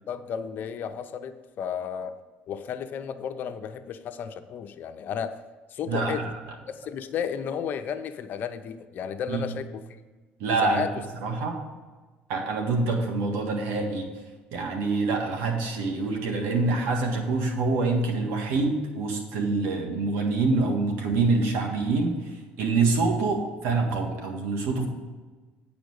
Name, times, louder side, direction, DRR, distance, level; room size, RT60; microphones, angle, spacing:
voice 1, 0.1-2.1 2.5-5.4 5.7-6.3 6.7-10.0 10.6-10.9, left 8 dB, 55° left, 8 dB, 0.7 m, -33 dB
voice 2, 5.9-6.2 9.3-9.5 10.4-10.8 11.2-11.6 12.3-14.1 14.5-24.9, right 3 dB, 85° right, 3 dB, 1.7 m, -26 dB
8.8 x 5.2 x 6.6 m, 1.3 s
cardioid pair, 105°, 4 cm